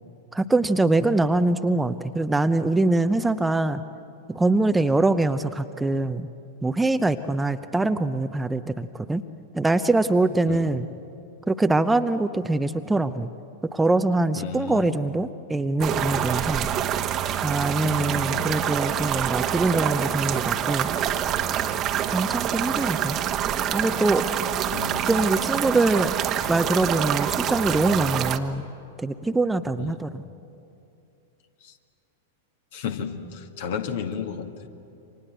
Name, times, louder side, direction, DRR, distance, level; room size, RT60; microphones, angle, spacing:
voice 1, 0.3-3.8 4.3-6.3 6.6-9.2 9.5-10.9 11.5-13.3 13.7-16.7 17.4-20.9 22.1-23.2 23.7-24.3 24.8-26.1 26.5-28.6 29.0-30.2, right 2 dB, 10° right, 10 dB, 0.7 m, -23 dB
voice 2, 14.4-14.9 17.8-18.5 24.7-25.2 29.8-30.0 31.6-31.7 32.7-34.7, left 7 dB, 55° left, 6 dB, 2.1 m, -33 dB
sound 1, 15.8-28.4, right 10 dB, 30° right, 1.2 m, -26 dB
29.0 x 26.0 x 7.8 m, 2.7 s
figure-of-eight pair, 95°, 0 cm